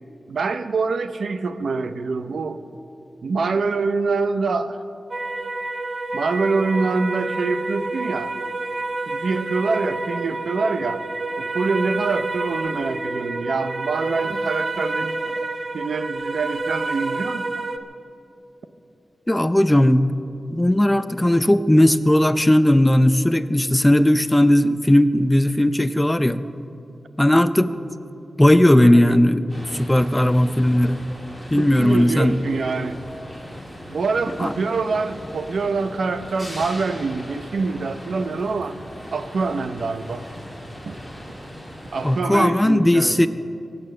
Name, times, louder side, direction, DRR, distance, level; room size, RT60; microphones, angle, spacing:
voice 1, 0.3-2.6 3.2-4.8 6.1-8.3 9.1-11.0 11.4-15.2 15.7-17.4 28.8-29.3 31.6-33.0 33.9-38.8 39.1-40.2 40.9-41.0 41.9-43.2, right 4 dB, 80° right, 10 dB, 0.7 m, -25 dB
sound 1, 5.1-17.8, right 2 dB, 35° right, 0.9 m, -28 dB
voice 2, 19.3-20.2 20.5-26.4 27.2-27.7 28.4-29.4 29.8-31.0 31.5-32.4 34.4-34.5 42.0-43.3, left 1 dB, 10° left, 12 dB, 0.5 m, -17 dB
sound 2, 29.5-42.2, equal, 5° right, 2.9 m, -38 dB
24.0 x 8.7 x 6.6 m, 2.8 s
wide cardioid pair, 155°, 0 cm